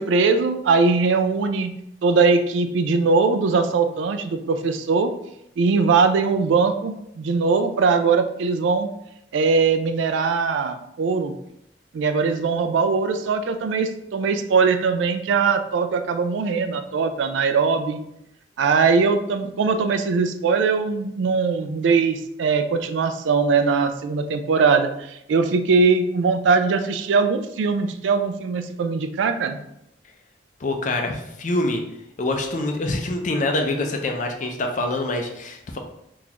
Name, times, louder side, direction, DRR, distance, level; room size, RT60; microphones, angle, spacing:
voice 1, 0.0-1.7 2.0-5.1 5.6-8.9 9.3-11.3 11.9-18.0 18.6-29.6, right 4 dB, 80° right, 9 dB, 0.3 m, -21 dB
voice 2, 30.6-31.8 32.2-35.8, left 2 dB, 40° left, 4 dB, 0.4 m, -25 dB
3.8 x 2.4 x 2.9 m, 0.79 s
head